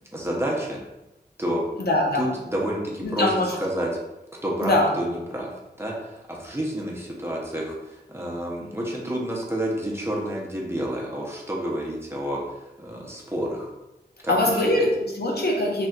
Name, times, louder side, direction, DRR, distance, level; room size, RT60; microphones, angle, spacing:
voice 1, 0.1-0.8 1.4-1.6 2.1-3.9 4.4-13.7 14.2-14.9, right 1 dB, 15° right, -3 dB, 0.8 m, -29 dB
voice 2, 1.8-2.3 3.0-3.5 4.6-4.9 14.3-15.9, left 1 dB, 70° left, -1 dB, 0.7 m, -22 dB
3.4 x 2.5 x 2.4 m, 0.94 s
wide cardioid pair, 50°, 17 cm